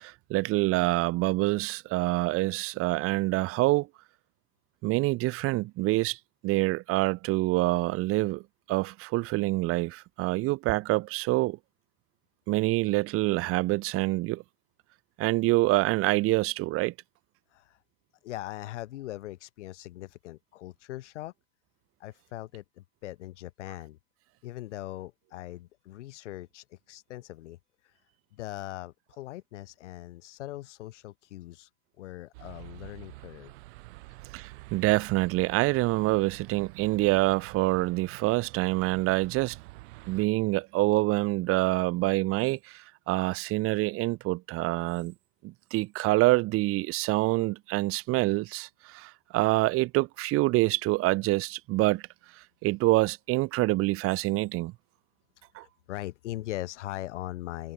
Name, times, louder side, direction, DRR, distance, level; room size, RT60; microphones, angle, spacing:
voice 1, 0.0-3.9 4.8-6.2 6.4-8.4 8.7-11.6 12.5-14.4 15.2-16.9 34.3-39.6 40.1-45.1 45.4-52.0 52.6-54.7 55.5-55.6, right 20 dB, 40° right, 0.6 m, -26 dB
voice 2, 17.5-17.8 18.2-21.3 22.0-24.0 24.4-27.6 27.8-28.0 28.3-31.7 32.0-33.5 55.6-57.7, left 15 dB, 80° left, 2.9 m, -40 dB
sound 1, 32.3-40.3, right 22 dB, 70° right, 6.8 m, -48 dB
supercardioid pair, 110°, 35 cm